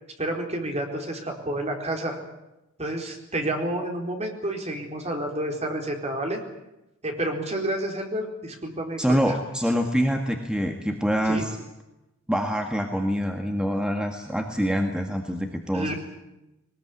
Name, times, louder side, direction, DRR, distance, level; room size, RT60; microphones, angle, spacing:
voice 1, 0.2-2.2 2.8-6.4 7.0-9.2 11.2-11.4 15.7-15.9, right 1 dB, 30° right, 2 dB, 4.3 m, -29 dB
voice 2, 9.0-11.6 12.3-15.9, equal, 5° right, 3 dB, 1.8 m, -25 dB
21.0 x 20.5 x 9.8 m, 0.94 s
head